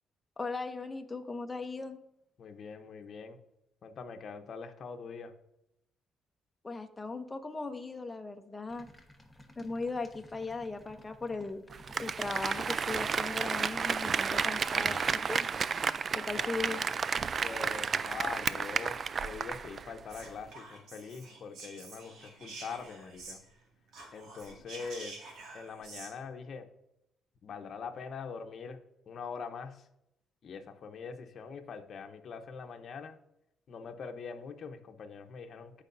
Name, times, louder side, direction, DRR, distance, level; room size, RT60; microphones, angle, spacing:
voice 1, 0.4-2.0 6.6-8.9 9.6-11.6 12.0-15.5 16.1-16.8, left 3 dB, 20° left, 5 dB, 0.8 m, -38 dB
voice 2, 2.4-3.4 3.8-5.3 16.3-16.5 17.4-23.4 24.1-25.2 25.5-26.7 27.4-28.8 29.1-29.8 30.4-33.2 33.7-35.8, left 5 dB, 60° left, 5 dB, 0.9 m, -43 dB
sound 1, 8.7-16.4, left 1 dB, ahead, 1.2 m, -56 dB
Applause, 11.7-19.9 20.2-20.3, right 6 dB, 45° right, 0.3 m, -32 dB
Whispering, 20.1-23.6 23.9-26.1, right 3 dB, 80° right, 2.1 m, -48 dB
14.0 x 5.0 x 2.6 m, 0.82 s
cardioid pair, 90°, 0 cm